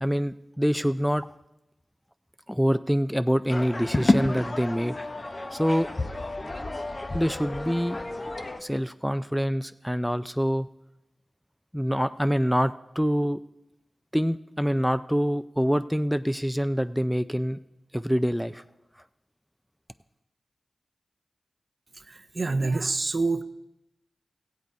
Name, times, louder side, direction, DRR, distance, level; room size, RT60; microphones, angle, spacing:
voice 1, 0.0-1.3 2.5-5.0 5.5-5.9 7.1-8.0 8.6-10.7 11.7-13.4 14.1-17.6 17.9-18.6, equal, ahead, 12 dB, 0.4 m, -25 dB
sound 1, 3.5-8.6, left 2 dB, 35° left, 0.8 m, -29 dB
voice 2, 21.9-23.4, right 3 dB, 50° right, 11 dB, 0.6 m, -27 dB
15.5 x 8.3 x 4.6 m, 0.90 s
cardioid pair, 45°, 0 cm